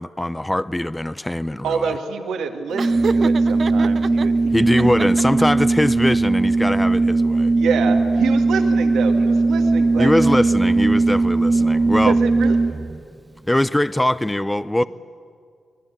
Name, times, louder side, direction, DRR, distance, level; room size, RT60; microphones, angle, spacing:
voice 1, 0.0-1.9 4.5-7.5 10.0-12.2 13.5-14.8, left 1 dB, 15° left, 15 dB, 0.7 m, -21 dB
voice 2, 1.6-4.5 4.8-5.1 7.5-10.4 12.0-12.6, right 6 dB, 80° right, 4 dB, 2.0 m, -27 dB
Organ, 2.7-13.0, right 3 dB, 25° right, 0.7 m, -18 dB
Laughter, 2.8-4.3 4.7-5.6, right 5 dB, 60° right, 0.6 m, -28 dB
25.5 x 20.0 x 8.9 m, 2.2 s
hypercardioid pair, 40°, 0 cm